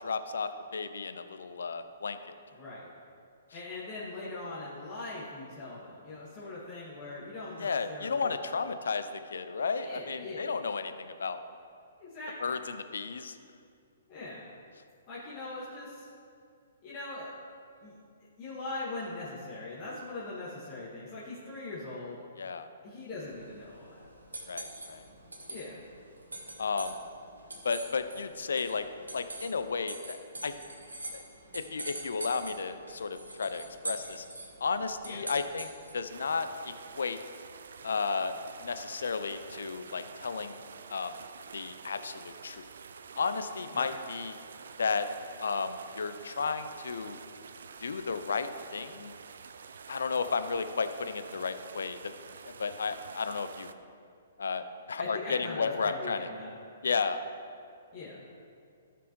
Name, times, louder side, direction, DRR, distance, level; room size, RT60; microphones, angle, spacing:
voice 1, 0.0-2.3 7.6-9.1 9.3-11.4 12.4-13.4 22.4-22.7 24.5-25.0 26.6-27.0 27.6-28.8 29.1-30.2 30.4-30.5 31.1-31.2 31.5-34.3 34.6-35.7 35.9-37.2 37.8-38.4 38.6-40.6 40.9-41.1 41.5-42.6 43.2-44.3 44.8-45.1 45.4-47.2 47.8-49.1 49.9-52.0 52.4-53.7 54.4-56.3 56.8-57.2, left 5 dB, 70° left, 10 dB, 0.5 m, -33 dB
voice 2, 2.5-2.9 3.5-8.3 9.8-10.4 12.0-12.6 14.1-14.5 15.1-16.1 16.8-17.3 17.8-17.9 18.4-22.2 22.4-22.5 22.8-24.1 25.5-25.8 35.0-35.2 43.7-43.9 55.0-56.5 57.9-58.2, left 2 dB, 40° left, -9 dB, 2.1 m, -41 dB
sound 1, 23.3-36.1, right 1 dB, 85° right, 1.3 m, -44 dB
sound 2, 36.1-53.7, right 6 dB, 65° right, 0.4 m, -48 dB
13.0 x 6.0 x 3.2 m, 2.3 s
figure-of-eight pair, 125°, 0 cm